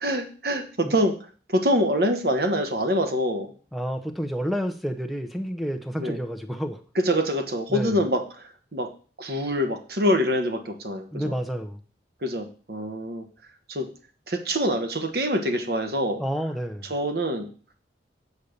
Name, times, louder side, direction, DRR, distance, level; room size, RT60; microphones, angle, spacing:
voice 1, 0.0-1.1 1.5-3.5 6.0-6.2 6.9-8.9 9.2-11.4 12.2-13.3 13.7-13.9 14.3-16.2 16.9-17.5, equal, 60° right, 6 dB, 1.2 m, -25 dB
voice 2, 3.7-6.8 7.7-8.0 11.1-11.8 16.2-16.9, equal, ahead, 7 dB, 0.8 m, -29 dB
8.4 x 4.2 x 6.6 m, 0.40 s
head